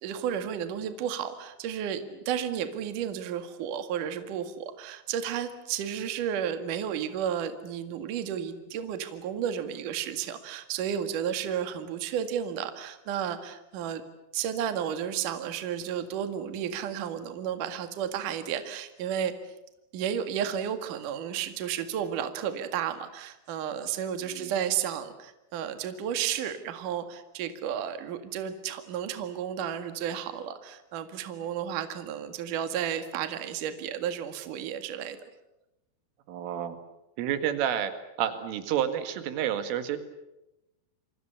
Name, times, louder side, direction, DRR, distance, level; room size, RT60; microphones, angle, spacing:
voice 1, 0.0-14.0 14.3-19.3 19.9-35.2, right 9 dB, 55° right, 8 dB, 2.8 m, -32 dB
voice 2, 24.2-24.5 36.3-36.8 37.2-37.9 38.2-40.0, right 10 dB, 85° right, 9 dB, 4.4 m, -29 dB
29.0 x 24.5 x 7.0 m, 0.93 s
omnidirectional pair, 5.6 m